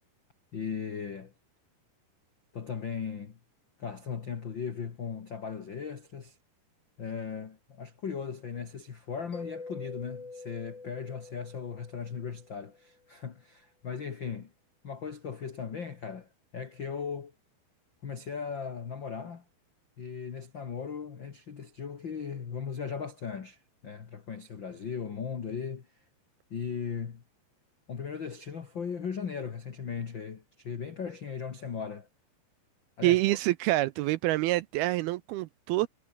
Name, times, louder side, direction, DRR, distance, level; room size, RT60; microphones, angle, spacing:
voice 1, 0.5-1.3 2.5-3.4 3.8-6.4 7.0-14.5 14.8-17.3 18.0-19.4 20.0-25.9 26.5-27.2 27.9-32.1 33.0-33.4, left 6 dB, 55° left, 1.3 m, -37 dB
Mallet percussion, 9.3-12.8, left 3 dB, 25° left, 5.2 m, -45 dB
voice 2, 33.0-35.9, right 18 dB, 80° right, 2.3 m, -26 dB
omnidirectional pair, 5.0 m